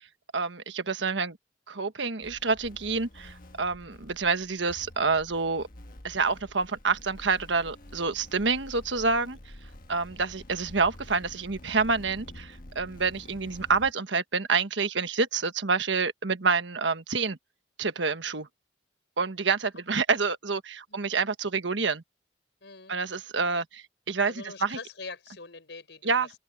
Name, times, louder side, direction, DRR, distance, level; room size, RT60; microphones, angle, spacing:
voice 1, 0.3-1.4 1.7-5.7 6.0-9.4 9.9-17.4 17.8-18.5 19.2-22.0 22.9-24.3 24.6-24.8 26.0-26.3, right 4 dB, 75° right, 1.4 m, -28 dB
sound 1, 2.2-13.9, left 1 dB, 50° left, 1.5 m, -48 dB
voice 2, 22.6-23.0 24.2-26.4, left 4 dB, 70° left, 5.3 m, -43 dB
open air
head